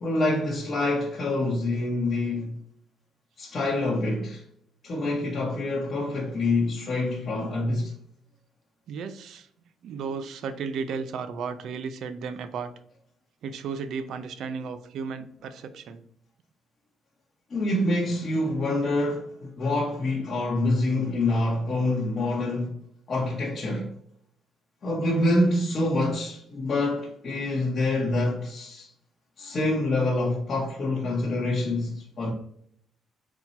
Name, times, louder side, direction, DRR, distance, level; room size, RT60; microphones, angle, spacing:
voice 1, 0.0-2.6 3.4-4.4 4.8-7.9 17.5-22.8 23.1-23.9 24.8-28.9 29.4-32.3, left 2 dB, 50° left, 0.9 m, -26 dB
voice 2, 8.9-9.5 9.8-12.7 13.4-16.0, right 5 dB, 75° right, 0.5 m, -34 dB
4.3 x 2.2 x 4.1 m
cardioid pair, 90°, 0 cm